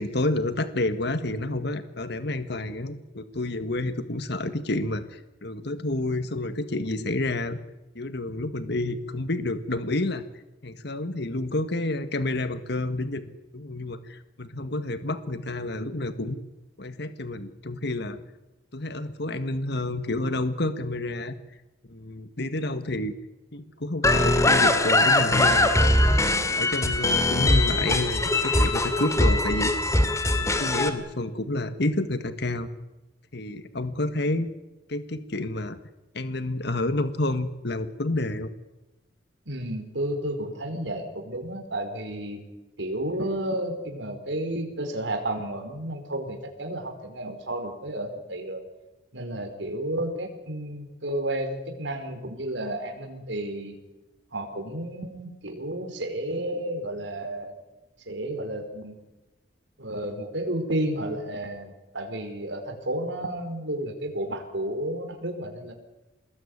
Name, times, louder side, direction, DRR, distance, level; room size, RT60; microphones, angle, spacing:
voice 1, 0.0-7.6 7.9-10.2 10.6-13.2 13.5-16.4 16.8-18.2 18.7-21.3 21.9-23.1 23.5-25.7 26.2-29.7 30.3-32.7 33.3-34.5 34.9-35.8 36.1-38.5, left 2 dB, 65° left, 11 dB, 1.7 m, -29 dB
sound 1, 24.0-30.9, left 2 dB, 15° left, 2.5 m, -21 dB
voice 2, 39.4-42.4 42.8-48.6 49.1-53.8 54.3-57.5 58.1-59.0 59.8-65.7, right 1 dB, 80° right, 5 dB, 5.0 m, -32 dB
26.0 x 20.5 x 9.8 m, 1.1 s
head